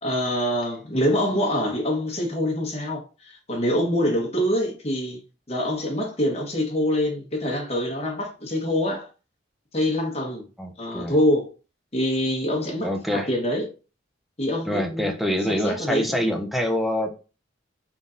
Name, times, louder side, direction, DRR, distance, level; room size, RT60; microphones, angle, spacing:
voice 1, 0.0-5.2 5.5-9.1 9.7-10.4 10.8-11.5 11.9-13.7 14.4-15.1 15.4-16.3, equal, 35° left, 1.2 m, -25 dB
voice 2, 10.6-11.1 12.8-13.3 14.7-17.1, left 1 dB, ahead, 0.5 m, -25 dB
3.8 x 3.6 x 2.5 m
head